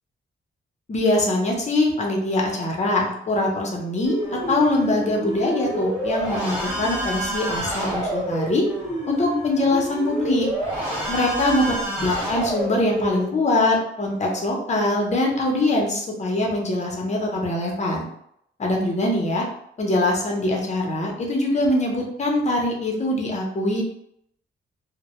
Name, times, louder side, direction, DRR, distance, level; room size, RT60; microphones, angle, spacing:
voice 1, 0.9-8.6 9.1-10.5 11.1-18.1 18.6-19.4 19.8-23.8, left 1 dB, 35° left, -1 dB, 0.6 m, -23 dB
sound 1, 4.0-13.2, equal, 10° right, 1.0 m, -28 dB
2.1 x 2.0 x 2.9 m, 0.73 s
wide cardioid pair, 125°, 20 cm